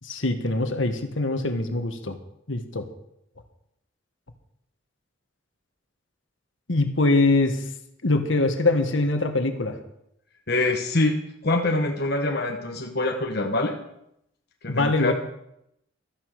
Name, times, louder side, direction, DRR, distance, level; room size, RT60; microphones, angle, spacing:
voice 1, 0.0-2.2 2.5-2.9 6.7-7.6 8.0-9.8 14.7-15.1, left 2 dB, 75° left, 6 dB, 1.7 m, -23 dB
voice 2, 10.5-13.8 14.6-15.1, left 2 dB, 55° left, 2 dB, 1.3 m, -25 dB
13.5 x 9.5 x 6.7 m, 0.79 s
head